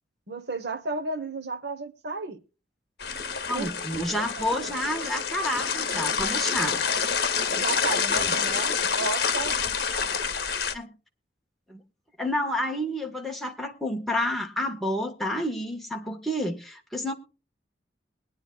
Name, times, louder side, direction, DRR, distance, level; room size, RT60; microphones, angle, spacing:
voice 1, 0.3-2.4 3.5-3.7 4.1-4.7 7.6-9.6, right 3 dB, 65° right, 1.2 m, -33 dB
sound 1, 3.0-10.7, left 6 dB, 60° left, 1.2 m, -27 dB
voice 2, 3.5-7.2 8.1-8.3 10.7-10.9 11.7-11.8 12.2-17.1, left 1 dB, ahead, 1.5 m, -30 dB
22.0 x 9.8 x 2.4 m
head